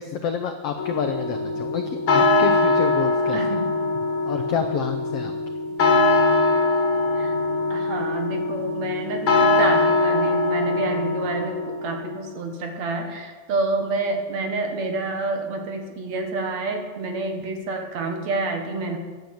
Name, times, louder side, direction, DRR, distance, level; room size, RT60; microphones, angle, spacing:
voice 1, 0.0-3.4 4.2-5.3, left 8 dB, 75° left, 7 dB, 1.4 m, -28 dB
sound 1, 0.8-12.0, left 2 dB, 45° left, 2.1 m, -22 dB
voice 2, 3.3-3.7 7.2-7.3 7.7-19.0, right 3 dB, 60° right, 4 dB, 2.6 m, -28 dB
11.5 x 9.3 x 7.8 m, 1.4 s
omnidirectional pair, 3.7 m